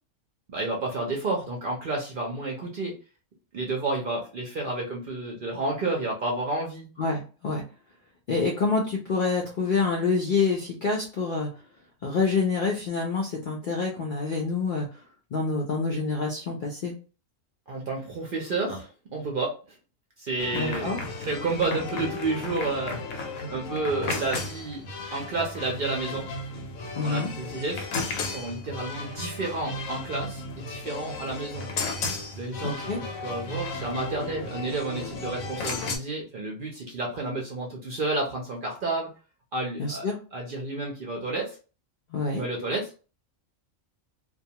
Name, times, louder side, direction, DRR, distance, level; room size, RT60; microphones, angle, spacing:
voice 1, 0.5-2.9 3.5-6.9 8.4-8.5 17.7-19.5 20.2-23.0 23.5-24.8 25.1-26.3 27.0-31.7 32.3-39.1 39.5-40.1 40.3-41.6 42.3-42.9, right 2 dB, 55° right, 0 dB, 0.6 m, -31 dB
voice 2, 7.0-7.6 8.3-11.5 12.0-14.9 15.3-16.9 20.5-21.0 26.9-27.3 32.6-33.0 39.8-40.2 42.1-42.4, left 4 dB, 65° left, -1 dB, 0.5 m, -27 dB
sound 1, 20.4-36.0, left 3 dB, 90° left, 1.0 m, -34 dB
2.3 x 2.2 x 2.7 m, 0.36 s
omnidirectional pair, 1.4 m